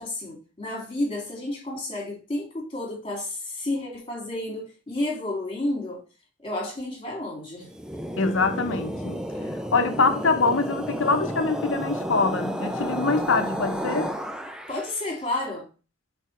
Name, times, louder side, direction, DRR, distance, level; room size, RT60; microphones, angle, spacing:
voice 1, 0.0-6.0 6.4-7.7 14.7-15.7, left 1 dB, 25° left, 2.5 m, -31 dB
sound 1, 7.6-15.0, equal, 5° right, 0.5 m, -32 dB
voice 2, 8.2-9.2 9.7-14.1, left 4 dB, 85° left, 0.9 m, -24 dB
4.8 x 4.7 x 4.5 m
head